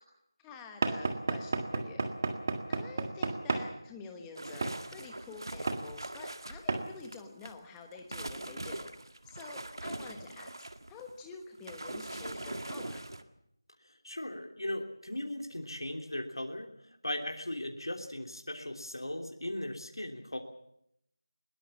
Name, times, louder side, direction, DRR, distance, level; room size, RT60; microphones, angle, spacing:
voice 1, 0.4-2.1 2.7-8.9 9.2-10.5 10.9-13.0, left 4 dB, 5° left, 4 dB, 1.2 m, -48 dB
Knock / Wood, 0.8-3.7 4.6-4.8 5.7-5.9 6.7-6.9, right 3 dB, 30° right, 1.6 m, -32 dB
sound 1, 4.4-7.6 7.9-13.2, right 1 dB, 70° right, 1.8 m, -42 dB
voice 2, 13.8-16.7 17.0-20.4, left 1 dB, 85° left, 3 dB, 3.2 m, -38 dB
21.0 x 19.0 x 7.3 m, 0.78 s
figure-of-eight pair, 170°, 2 cm